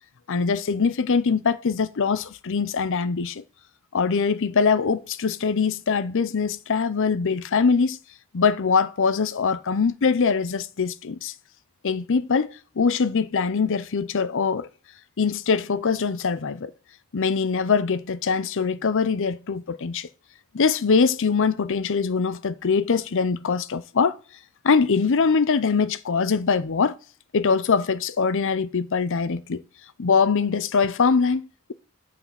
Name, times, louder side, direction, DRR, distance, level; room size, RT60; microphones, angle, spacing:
voice 1, 0.3-3.4 3.9-8.0 8.3-11.3 11.8-14.7 15.2-16.7 17.1-20.1 20.5-24.2 24.6-27.0 27.3-29.6 30.0-31.7, left 5 dB, 60° left, 0.6 m, -23 dB
8.6 x 4.9 x 5.8 m
head